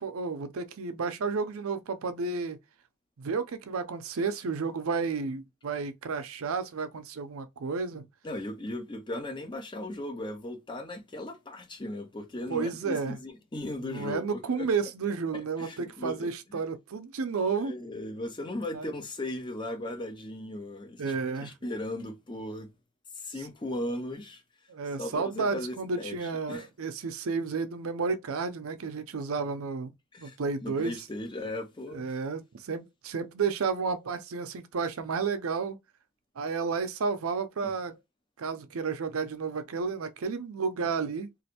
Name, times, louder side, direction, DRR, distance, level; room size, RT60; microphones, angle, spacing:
voice 1, 0.0-2.6 3.2-8.1 12.5-13.2 13.8-17.7 18.7-18.9 21.0-21.5 24.7-29.9 30.2-31.0 31.9-35.8 36.4-38.0 38.4-41.3, right 5 dB, 70° right, 0.5 m, -32 dB
voice 2, 8.2-14.7 15.3-16.6 17.6-22.7 23.2-24.4 25.0-26.7 30.1-30.4 30.6-32.1 37.6-37.7, left 1 dB, 20° left, 0.5 m, -37 dB
3.1 x 2.5 x 2.8 m
head